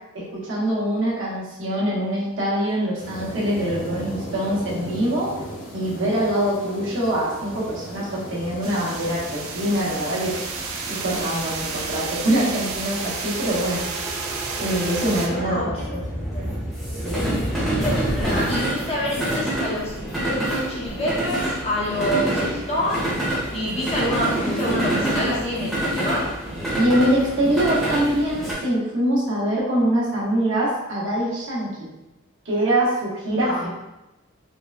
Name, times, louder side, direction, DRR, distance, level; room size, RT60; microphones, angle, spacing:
voice 1, 0.1-5.3 5.7-10.4 10.9-13.8 14.6-16.2 17.0-17.4 26.8-31.9 32.4-33.7, right 1 dB, 65° right, -6 dB, 0.9 m, -24 dB
sound 1, 3.0-12.0, right 1 dB, 65° left, 0.9 m, -37 dB
sound 2, 8.6-15.3, right 4 dB, 90° right, 0.4 m, -32 dB
sound 3, 9.2-28.5, right 1 dB, ahead, 0.6 m, -27 dB
voice 2, 15.2-16.5 17.8-23.1 23.5-26.3 33.3-33.6, equal, 30° left, -7 dB, 0.8 m, -27 dB
3.5 x 2.1 x 2.3 m, 0.98 s
head